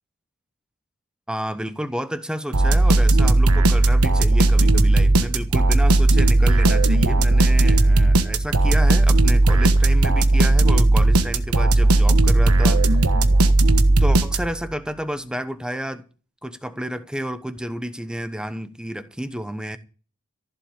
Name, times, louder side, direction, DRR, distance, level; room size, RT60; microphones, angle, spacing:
voice 1, 1.3-12.9 14.0-16.0 16.4-19.8, equal, 5° right, 0.9 m, -30 dB
sound 1, 2.5-14.7, right 2 dB, 80° right, 1.2 m, -16 dB
15.0 x 7.4 x 8.3 m
head